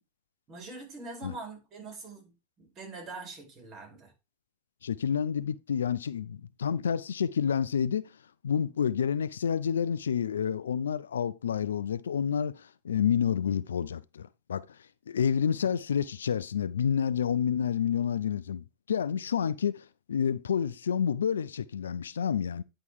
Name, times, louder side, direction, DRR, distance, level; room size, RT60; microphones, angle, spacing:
voice 1, 0.5-4.1, right 3 dB, 35° right, 4.3 m, -43 dB
voice 2, 4.8-8.1 8.4-14.7 15.1-22.6, left 8 dB, 85° left, 0.4 m, -29 dB
9.7 x 3.7 x 4.7 m
hypercardioid pair, 105°, 0 cm